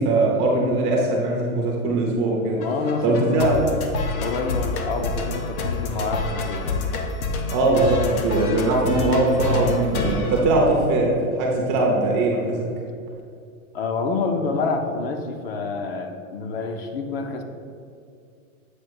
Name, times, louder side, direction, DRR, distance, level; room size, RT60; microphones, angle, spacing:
voice 1, 0.0-2.6 3.0-3.6 7.5-12.7, right 2 dB, 20° right, -1 dB, 0.5 m, -21 dB
voice 2, 2.5-3.5 4.2-6.8 13.7-17.4, left 4 dB, 45° left, 5 dB, 0.7 m, -27 dB
sound 1, 2.6-11.2, left 3 dB, 80° left, 1.0 m, -28 dB
7.9 x 2.8 x 6.0 m, 2.4 s
hypercardioid pair, 155°, 43 cm